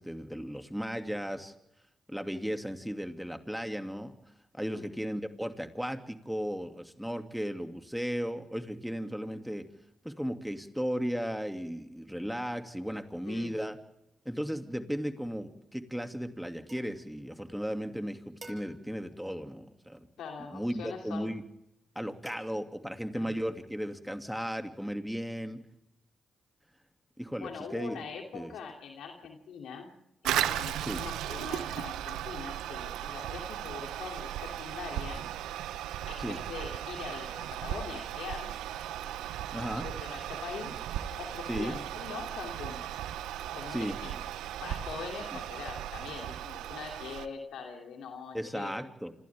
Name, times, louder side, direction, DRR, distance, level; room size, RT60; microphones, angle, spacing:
voice 1, 0.0-1.5 2.1-4.2 4.5-9.7 10.0-13.8 14.3-20.1 20.5-21.4 22.0-25.6 27.2-28.0 28.3-28.5 30.9-31.0 36.2-36.4 39.5-39.9 41.5-41.8 43.7-43.9 48.3-49.1, equal, ahead, 7 dB, 2.5 m, -35 dB
sound 1, 16.7-17.9 18.4-20.2 22.3-23.3, right 2 dB, 35° right, 6.2 m, -54 dB
voice 2, 20.2-21.3 23.1-23.3 27.4-29.9 30.2-35.3 36.1-38.6 39.0-40.8 41.2-42.8 43.5-44.1 44.6-48.7, left 6 dB, 80° left, 2 dB, 2.9 m, -42 dB
Toilet flush, 30.2-47.3, right 12 dB, 85° right, 0.9 m, -36 dB
28.0 x 27.0 x 3.6 m, 0.82 s
supercardioid pair, 45°, 0 cm